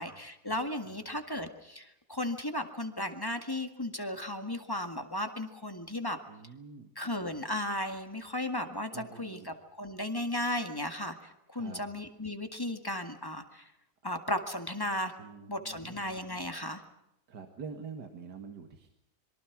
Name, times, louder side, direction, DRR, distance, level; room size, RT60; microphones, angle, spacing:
voice 1, 0.0-6.2 7.0-13.7 14.0-15.1 15.5-16.8, left 1 dB, 15° left, 6 dB, 1.8 m, -35 dB
voice 2, 6.3-6.9 8.9-9.5 11.6-11.8 15.2-16.0 17.3-18.9, right 5 dB, 80° right, 5 dB, 2.4 m, -46 dB
26.0 x 23.5 x 6.0 m, 0.88 s
omnidirectional pair, 1.7 m